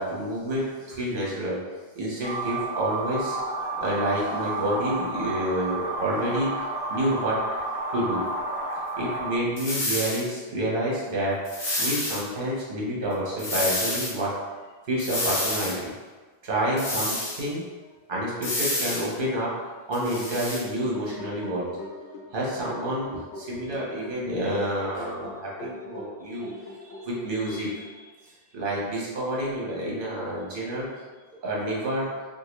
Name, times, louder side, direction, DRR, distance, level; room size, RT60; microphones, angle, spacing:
voice 1, 0.0-1.6 1.9-3.4 3.8-6.5 6.9-7.4 7.9-8.2 9.0-14.3 14.9-15.9 16.4-17.6 18.1-19.5 19.9-21.7 22.3-26.5 27.0-27.9 28.5-30.9 31.4-32.1, right 1 dB, 55° right, -6 dB, 1.1 m, -28 dB
sound 1, 2.2-9.4, right 2 dB, 20° left, 1.3 m, -31 dB
sound 2, 9.6-10.2 11.4-12.2 13.4-14.1 15.0-15.8 16.8-17.4 18.4-19.1 19.9-20.6, left 1 dB, 45° left, 1.0 m, -29 dB
sound 3, 20.7-28.1, left 1 dB, 80° left, 0.8 m, -42 dB
3.6 x 2.4 x 3.0 m, 1.3 s
omnidirectional pair, 1.1 m